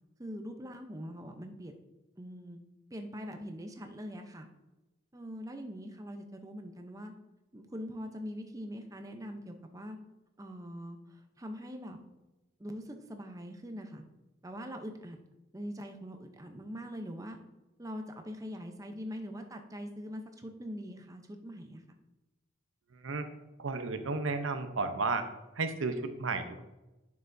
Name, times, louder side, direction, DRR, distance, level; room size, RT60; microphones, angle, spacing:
voice 1, 0.2-1.7 2.2-2.6 2.9-4.5 5.1-7.1 7.5-10.0 10.4-12.0 12.6-14.0 14.4-15.2 15.5-17.4 17.8-21.8, equal, 15° right, 5 dB, 0.7 m, -43 dB
voice 2, 23.6-25.3 25.6-26.6, right 3 dB, 75° right, 8 dB, 0.8 m, -33 dB
9.7 x 6.8 x 2.6 m, 1.0 s
head